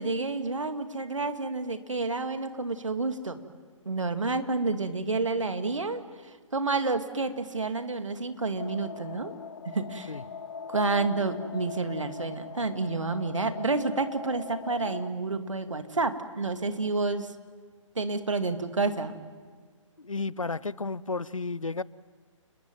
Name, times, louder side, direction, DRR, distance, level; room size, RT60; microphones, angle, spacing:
voice 1, 0.0-3.4 3.9-6.0 6.5-9.3 9.7-10.2 10.7-17.3 18.0-19.2, right 3 dB, 70° right, 2.3 m, -29 dB
sound 1, 8.6-15.1, left 6 dB, 50° left, 1.4 m, -42 dB
voice 2, 20.0-21.8, left 3 dB, 80° left, 0.7 m, -32 dB
30.0 x 21.0 x 9.5 m
figure-of-eight pair, 135°, 17 cm